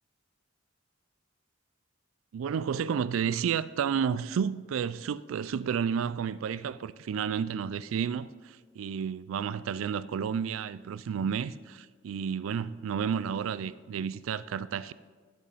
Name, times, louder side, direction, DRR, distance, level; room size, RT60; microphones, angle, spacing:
voice 1, 2.3-14.9, right 7 dB, 85° right, 0.3 m, -31 dB
8.6 x 6.5 x 5.5 m
head